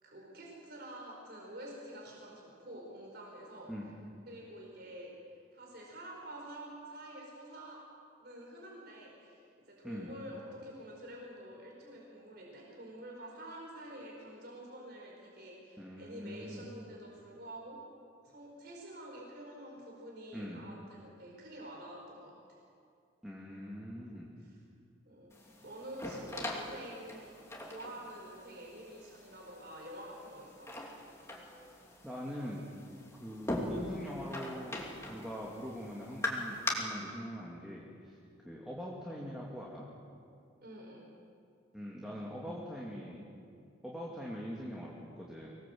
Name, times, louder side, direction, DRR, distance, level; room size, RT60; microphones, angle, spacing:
voice 1, 0.0-3.7 4.3-5.1 5.5-7.8 8.2-17.8 18.2-22.4 24.4-24.6 25.0-25.3 25.6-27.3 27.6-30.7 40.6-41.1, right 1 dB, 50° right, -2 dB, 4.7 m, -48 dB
voice 2, 9.8-10.2 15.8-16.7 20.3-20.7 23.2-24.3 32.0-32.7 33.1-38.2 38.4-39.9 41.7-43.3 43.8-45.5, equal, 5° right, -4 dB, 2.5 m, -43 dB
sound 1, 25.3-36.7, left 1 dB, 15° left, 2.7 m, -42 dB
25.0 x 19.0 x 7.8 m, 2.4 s
head